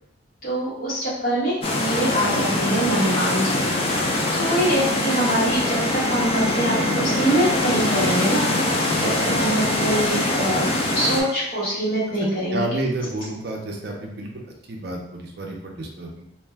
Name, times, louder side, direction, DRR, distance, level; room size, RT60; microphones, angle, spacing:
voice 1, 0.4-4.0 4.3-8.5 9.0-12.6, right 1 dB, 50° left, -8 dB, 1.2 m, -24 dB
sound 1, 1.6-11.2, left 2 dB, 30° left, 0.4 m, -23 dB
sound 2, 3.9-11.8 12.1-12.2, right 6 dB, 5° left, 0.8 m, -39 dB
voice 2, 3.9-4.2 9.0-9.1 12.5-16.2, right 1 dB, 55° right, 0 dB, 0.5 m, -30 dB
2.6 x 2.2 x 3.3 m, 0.75 s
head